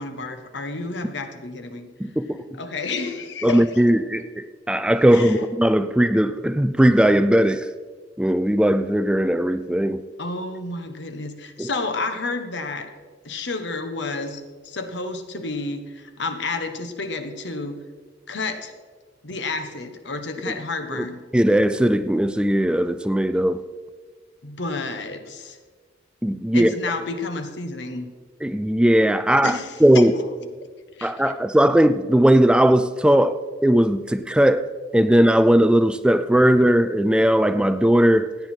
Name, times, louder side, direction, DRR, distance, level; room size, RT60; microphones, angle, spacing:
voice 1, 0.0-1.9 2.6-3.9 5.1-5.5 10.2-12.9 13.2-17.8 18.3-18.7 19.2-21.2 24.4-25.6 26.5-28.1 29.4-30.1 30.6-30.7 31.0-31.3, left 3 dB, 70° left, 1.2 m, -30 dB
voice 2, 2.0-2.4 3.4-7.7 8.2-10.0 11.6-11.7 20.5-20.6 20.9-21.1 21.3-23.6 26.2-26.7 28.4-30.1 31.0-38.4, right 1 dB, 5° right, 0.3 m, -18 dB
16.5 x 9.5 x 4.5 m
head